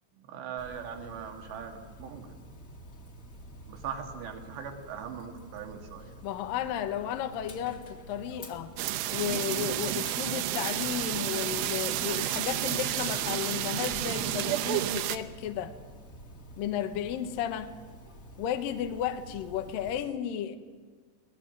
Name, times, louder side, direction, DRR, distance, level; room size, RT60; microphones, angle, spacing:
voice 1, 0.1-2.4 3.7-6.1, right 7 dB, 70° right, 3 dB, 4.0 m, -40 dB
Dog, 0.6-20.0, right 1 dB, 30° left, 1.7 m, -49 dB
voice 2, 6.2-8.7 9.1-15.7 16.6-17.8 18.4-20.6, left 10 dB, 70° left, 8 dB, 2.2 m, -33 dB
sound 1, 8.8-15.2, right 13 dB, 90° right, 3.4 m, -31 dB
25.5 x 19.0 x 7.5 m, 1.5 s
omnidirectional pair, 5.3 m